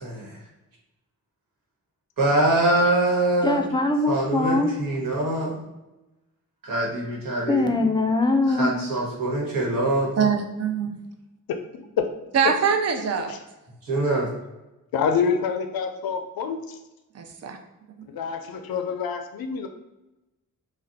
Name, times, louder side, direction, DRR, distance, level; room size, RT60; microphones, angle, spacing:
voice 1, 0.0-0.4 2.2-3.6 4.1-5.7 6.6-7.7 8.5-10.1 13.8-14.3, right 2 dB, 70° right, -3 dB, 1.2 m, -24 dB
voice 2, 3.4-4.7 7.5-8.7, left 2 dB, 15° left, 4 dB, 0.4 m, -22 dB
voice 3, 10.2-11.0 12.3-13.4 17.1-17.6 18.0-18.1, right 6 dB, 45° right, 5 dB, 0.5 m, -23 dB
voice 4, 14.9-16.8 18.1-19.7, left 6 dB, 80° left, 6 dB, 0.5 m, -26 dB
2.5 x 2.1 x 3.9 m, 1.0 s
cardioid pair, 70°, 35 cm